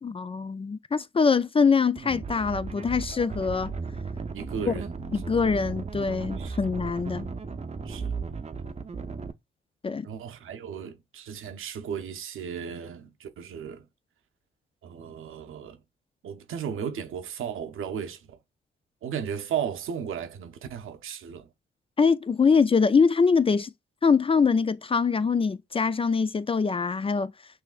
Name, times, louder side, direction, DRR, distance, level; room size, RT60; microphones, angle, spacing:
voice 1, 0.0-3.7 4.7-4.8 5.1-7.3 9.8-10.1 22.0-23.7 24.0-27.3, left 5 dB, 25° left, 0.3 m, -23 dB
sound 1, 2.0-9.3, right 4 dB, 30° right, 0.6 m, -35 dB
voice 2, 4.3-5.3 6.4-6.6 7.8-8.4 10.0-13.9 14.8-15.8 16.2-18.4 19.0-21.5, right 8 dB, 75° right, 0.7 m, -35 dB
5.9 x 2.6 x 2.4 m
supercardioid pair, 50°, 21 cm